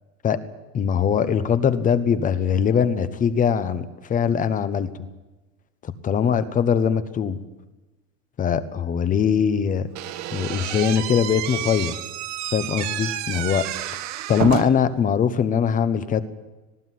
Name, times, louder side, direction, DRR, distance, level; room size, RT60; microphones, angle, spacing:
voice 1, 0.7-3.8 4.1-4.9 5.8-7.4 8.4-9.9 10.3-11.9 12.5-13.7 14.3-16.2, left 7 dB, 20° left, 13 dB, 1.1 m, -21 dB
Slam / Squeak, 10.0-14.9, right 12 dB, 45° right, 1.6 m, -30 dB
19.0 x 16.5 x 9.5 m, 1.1 s
supercardioid pair, 140°, 37 cm